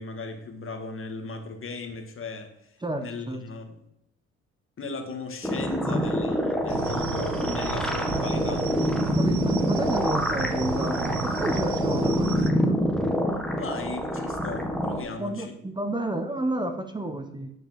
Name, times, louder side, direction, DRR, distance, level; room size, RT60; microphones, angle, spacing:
voice 1, 0.0-3.8 4.8-8.7 13.6-15.5, left 4 dB, 45° left, 5 dB, 2.1 m, -37 dB
voice 2, 2.8-3.4 9.1-12.8 15.2-17.5, right 1 dB, 15° right, 6 dB, 1.1 m, -31 dB
sound 1, 5.4-15.0, equal, ahead, 1.7 m, -26 dB
sound 2, 6.7-12.5, right 8 dB, 70° right, 1.1 m, -34 dB
10.0 x 5.4 x 7.6 m, 0.79 s
cardioid pair, 90°, 30 cm